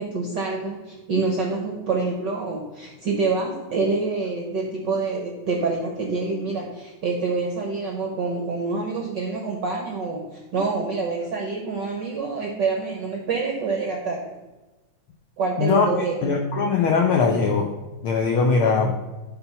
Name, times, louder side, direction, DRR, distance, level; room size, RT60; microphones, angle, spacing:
voice 1, 0.0-14.4 15.4-16.2, right 4 dB, 70° right, 1 dB, 1.0 m, -26 dB
voice 2, 15.6-15.9 16.2-17.7 18.0-18.9, left 5 dB, 90° left, 4 dB, 1.1 m, -20 dB
11.5 x 4.0 x 5.5 m, 1.2 s
omnidirectional pair, 3.4 m